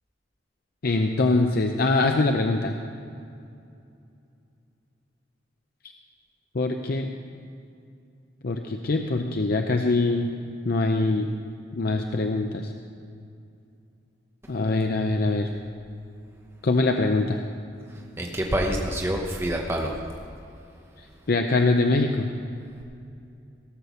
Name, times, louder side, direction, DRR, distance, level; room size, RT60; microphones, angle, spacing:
voice 1, 0.8-2.7 6.5-7.1 8.4-10.3 10.6-11.3 11.8-12.7 14.5-15.5 16.6-17.4 21.3-22.3, left 2 dB, 55° left, 4 dB, 0.6 m, -23 dB
voice 2, 18.2-19.9, right 1 dB, 15° right, 0 dB, 0.9 m, -26 dB
17.0 x 6.6 x 6.9 m, 2.5 s
head